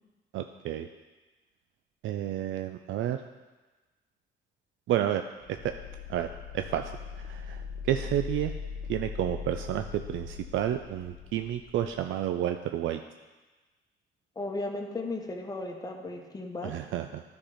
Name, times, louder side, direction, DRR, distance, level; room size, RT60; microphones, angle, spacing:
voice 1, 0.3-0.9 2.0-3.2 4.9-5.7 6.1-6.3 6.5-8.5 8.9-13.0 16.6-17.2, right 11 dB, 75° right, 7 dB, 0.4 m, -31 dB
sound 1, 5.4-12.1, left 6 dB, 60° left, 0.7 m, -40 dB
voice 2, 14.4-16.7, left 2 dB, 20° left, 2 dB, 1.2 m, -35 dB
10.0 x 4.4 x 5.0 m, 1.2 s
cardioid pair, 90°, 20 cm